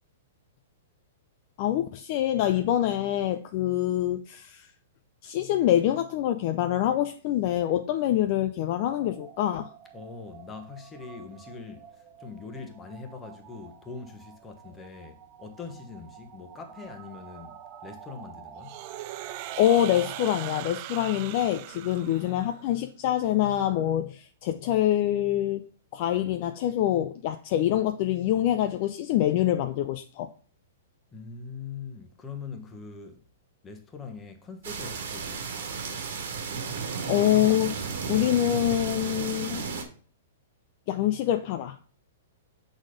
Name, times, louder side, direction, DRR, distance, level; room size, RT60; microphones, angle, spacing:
voice 1, 1.6-4.7 5.2-9.7 19.6-25.6 25.9-30.3 37.1-37.8 38.1-39.7 40.9-41.9, left 12 dB, 45° left, 0.5 m, -25 dB
sound 1, 8.8-20.7, right 8 dB, 25° right, 0.8 m, -49 dB
voice 2, 9.9-18.8 31.1-33.2 33.6-36.1, left 5 dB, 20° left, 1.2 m, -43 dB
sound 2, 18.6-22.7, right 15 dB, 45° right, 0.4 m, -39 dB
sound 3, 34.6-39.8, right 5 dB, 70° right, 1.6 m, -33 dB
6.2 x 4.2 x 4.9 m
hypercardioid pair, 135°, 0 cm